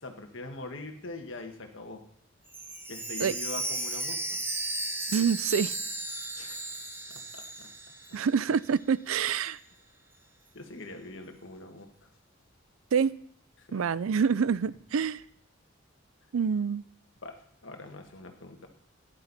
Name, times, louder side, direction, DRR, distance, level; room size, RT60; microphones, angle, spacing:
voice 1, 0.0-2.0 2.9-4.4 6.4-6.8 7.1-7.7 10.5-11.9 13.6-13.9 17.2-17.4 17.6-18.7, left 2 dB, 65° left, 4 dB, 1.7 m, -43 dB
Chime, 2.5-8.4 8.7-8.8 9.4-9.5, right 2 dB, 10° right, 1.1 m, -35 dB
voice 2, 5.1-5.7 8.1-9.6 12.9-13.1 13.7-15.2 16.3-16.8, right 6 dB, 80° right, 19 dB, 0.4 m, -26 dB
13.5 x 10.5 x 4.1 m, 0.68 s
head